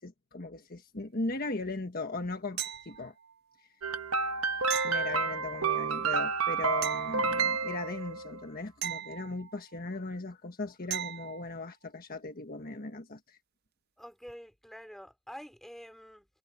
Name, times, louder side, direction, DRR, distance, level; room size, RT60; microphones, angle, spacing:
voice 1, 0.0-2.6 2.8-3.1 4.8-13.2, left 2 dB, 45° left, 1.5 m, -38 dB
sound 1, 2.6-3.3 4.7-5.8 6.8-7.8 8.8-9.8 10.9-11.5 14.3-14.4, right 11 dB, 50° right, 0.5 m, -38 dB
sound 2, 3.8-8.4, right 5 dB, 80° right, 1.2 m, -30 dB
voice 2, 14.0-16.3, equal, ahead, 3.8 m, -47 dB
head